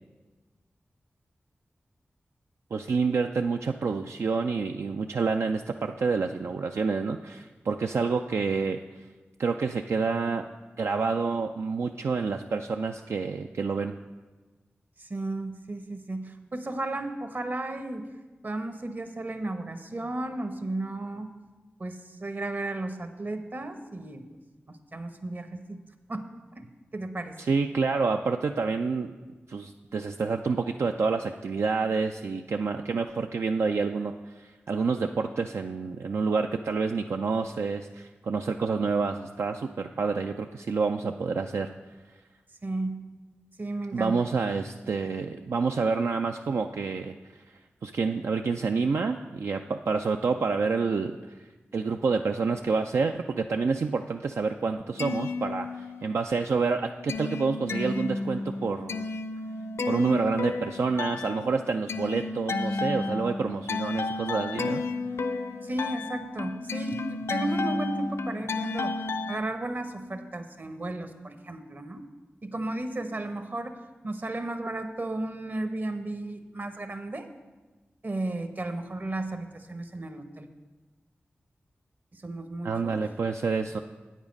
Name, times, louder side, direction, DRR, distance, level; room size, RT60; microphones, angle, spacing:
voice 1, 2.7-8.8 9.4-10.4 10.8-13.9 27.4-29.1 29.5-41.7 43.9-47.1 47.8-51.3 51.7-59.1 59.9-64.8 82.6-83.8, right 4 dB, 75° right, 5 dB, 0.3 m, -28 dB
voice 2, 15.0-18.1 18.4-21.3 21.8-24.2 24.7-25.8 26.1-26.3 26.6-27.4 42.6-43.0 43.6-44.2 65.6-72.1 72.4-73.8 74.0-77.3 78.0-80.5 82.1-83.0, right 2 dB, 45° right, 8 dB, 0.9 m, -34 dB
sound 1, 54.8-56.2 56.5-69.4, left 3 dB, 75° left, 0.4 m, -32 dB
8.7 x 7.3 x 5.2 m, 1.2 s
cardioid pair, 45°, 5 cm